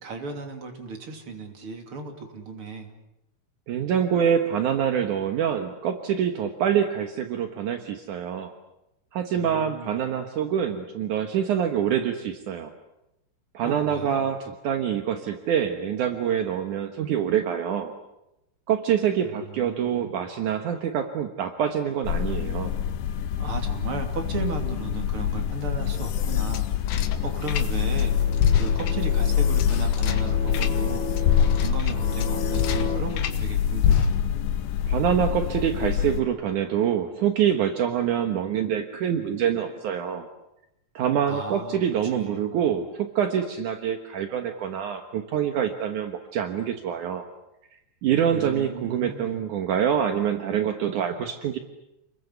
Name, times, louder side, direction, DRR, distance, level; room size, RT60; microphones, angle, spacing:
voice 1, 0.0-2.9 9.3-10.0 13.6-14.3 19.2-20.1 23.4-26.7 27.2-28.3 28.6-31.1 31.6-34.1 41.3-41.8 42.1-42.4 48.3-49.4, right 4 dB, 35° right, 4 dB, 3.1 m, -36 dB
voice 2, 3.7-8.5 9.1-12.7 13.5-17.9 18.7-22.7 34.9-40.3 40.9-47.3 48.0-51.6, right 9 dB, 65° right, 6 dB, 2.0 m, -25 dB
sound 1, 22.0-36.2, left 9 dB, 85° left, 1.8 m, -26 dB
sound 2, 25.7-28.0 28.3-33.4 33.8-34.5, left 8 dB, 70° left, 3.3 m, -26 dB
sound 3, 27.0-33.0, left 2 dB, 45° left, 3.5 m, -35 dB
30.0 x 22.0 x 8.2 m, 0.90 s
omnidirectional pair, 5.4 m